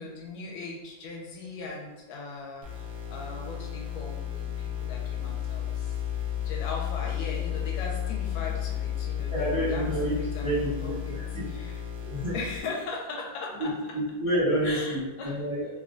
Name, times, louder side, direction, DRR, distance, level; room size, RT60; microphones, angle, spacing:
voice 1, 0.0-6.0 6.4-11.2 11.4-11.8 12.3-13.7 14.6-15.4, left 3 dB, 75° left, -1 dB, 1.3 m, -39 dB
sound 1, 2.6-12.6, left 10 dB, 90° right, 0.8 m, -33 dB
voice 2, 9.3-10.2 10.4-11.4 12.0-12.4 13.6-15.7, right 1 dB, 35° right, -10 dB, 0.5 m, -29 dB
3.4 x 2.2 x 2.5 m, 1.1 s
omnidirectional pair, 2.3 m